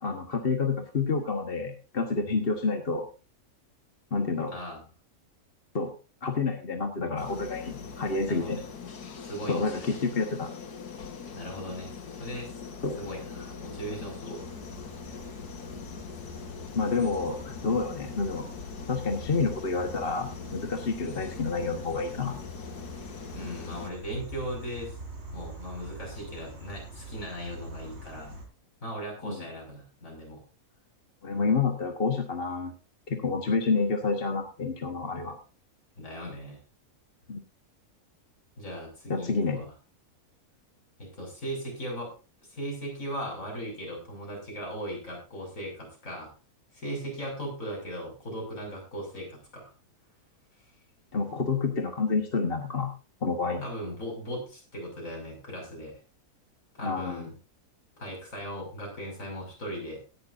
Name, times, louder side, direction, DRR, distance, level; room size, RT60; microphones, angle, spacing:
voice 1, 0.0-3.1 4.1-4.5 5.7-5.9 6.2-8.6 9.5-10.5 12.8-13.0 16.7-18.4 18.9-22.4 29.2-29.5 31.2-32.7 33.1-35.4 37.3-37.4 39.1-39.6 51.1-52.9 53.2-53.6 56.8-57.3, left 4 dB, 40° left, 5 dB, 1.5 m, -29 dB
voice 2, 4.5-4.9 8.2-8.6 9.2-10.0 11.3-12.5 13.0-14.6 15.0-15.3 17.3-17.8 23.3-25.0 25.3-28.4 28.8-30.4 36.0-36.6 38.6-39.7 41.0-42.1 42.5-46.3 46.7-49.7 53.6-56.0 56.7-57.3 58.0-60.0, equal, 55° left, 0 dB, 6.7 m, -38 dB
sound 1, 7.2-23.9, left 6 dB, 85° left, 2.0 m, -42 dB
sound 2, 14.3-28.4, equal, 45° right, 4.2 m, -44 dB
17.5 x 11.5 x 2.7 m, 0.33 s
omnidirectional pair, 1.6 m